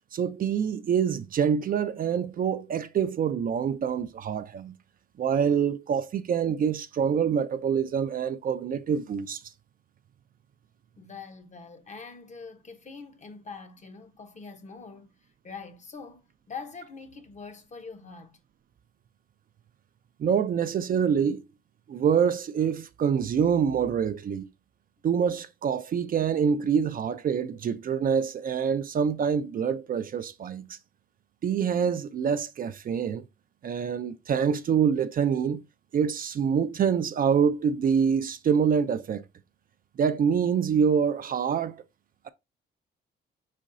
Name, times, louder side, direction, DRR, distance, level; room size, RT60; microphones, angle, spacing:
voice 1, 0.1-4.7 5.2-9.4 20.2-21.4 21.9-24.5 25.0-30.8 31.4-33.2 33.6-35.6 35.9-39.2 40.0-41.8, right 7 dB, 45° right, 0.4 m, -26 dB
voice 2, 11.0-18.4, left 5 dB, 35° left, 0.8 m, -44 dB
4.5 x 4.2 x 2.5 m
cardioid pair, 90°, 20 cm